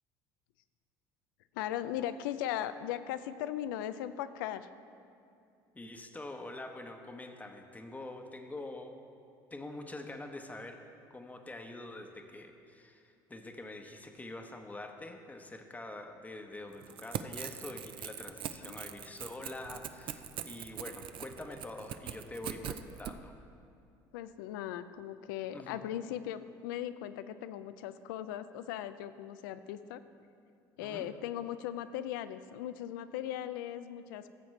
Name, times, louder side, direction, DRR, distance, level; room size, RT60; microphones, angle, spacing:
voice 1, 1.5-4.7 18.6-18.8 24.1-30.0 30.8-34.2, left 11 dB, 85° left, 13 dB, 0.4 m, -38 dB
voice 2, 5.7-8.9 9.5-10.8 11.1-23.4 25.5-25.8 30.8-31.1, left 2 dB, 15° left, 5 dB, 0.9 m, -45 dB
Crackle / Tearing, 16.8-23.1, right 10 dB, 55° right, 0.4 m, -42 dB
15.0 x 7.1 x 3.2 m, 2.5 s
supercardioid pair, 85°, 11 cm